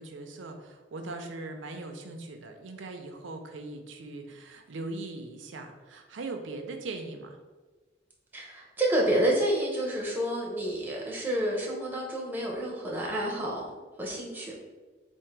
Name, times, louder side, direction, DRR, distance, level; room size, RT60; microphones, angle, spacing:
voice 1, 0.0-7.4, right 2 dB, 80° right, 4 dB, 0.5 m, -40 dB
voice 2, 8.3-13.7 14.0-14.6, right 1 dB, 10° right, -3 dB, 0.8 m, -29 dB
3.7 x 2.6 x 4.5 m, 1.3 s
head